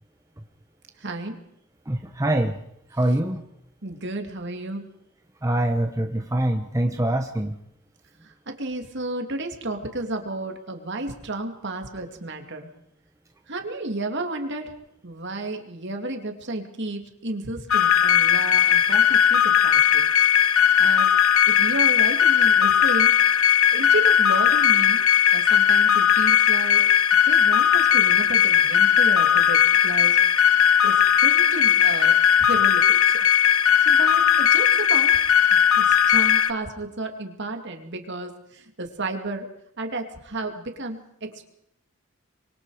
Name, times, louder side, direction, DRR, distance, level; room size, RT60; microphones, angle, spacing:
voice 1, 1.0-1.4 3.8-4.8 8.2-12.7 13.5-14.7 15.0-20.2 20.8-21.1 21.5-23.1 23.7-25.0 25.3-26.9 27.3-33.3 33.8-35.2 35.5-39.5 39.8-41.5, right 2 dB, 50° right, 4 dB, 2.6 m, -32 dB
voice 2, 1.9-2.6 2.9-3.4 5.4-7.6, right 1 dB, 15° right, 5 dB, 0.9 m, -24 dB
sound 1, 17.7-36.5, left 9 dB, 70° left, 1.0 m, -18 dB
25.5 x 23.0 x 5.0 m, 0.76 s
head